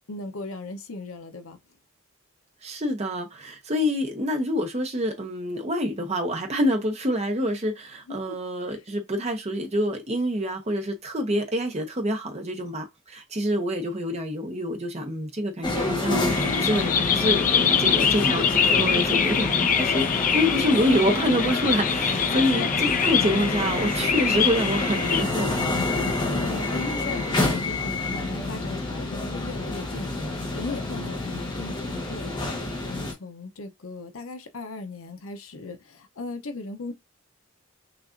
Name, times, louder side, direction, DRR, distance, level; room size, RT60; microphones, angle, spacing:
voice 1, 0.1-1.6 8.1-8.4 22.4-22.7 26.3-36.9, left 3 dB, 85° left, 0.8 m, -37 dB
voice 2, 2.6-16.3 16.6-25.6, equal, 30° right, 0.8 m, -26 dB
sound 1, 15.6-33.1, left 2 dB, 20° left, 0.9 m, -28 dB
sound 2, 16.3-25.2, left 7 dB, 40° left, 0.4 m, -24 dB
5.8 x 2.5 x 2.5 m
head